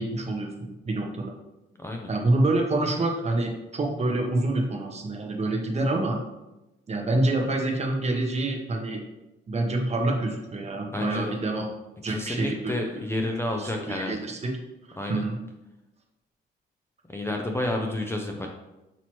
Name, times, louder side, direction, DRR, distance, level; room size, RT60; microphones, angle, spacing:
voice 1, 0.0-1.3 2.1-6.2 6.9-9.0 9.5-11.7 12.0-13.0 13.6-14.5 14.9-15.4, right 2 dB, 35° right, 1 dB, 0.9 m, -27 dB
voice 2, 1.8-2.1 10.9-11.4 12.1-14.2 15.0-15.2 17.1-18.5, left 1 dB, 10° left, 1 dB, 0.5 m, -30 dB
6.0 x 2.9 x 3.0 m, 0.97 s
cardioid pair, 90°, 20 cm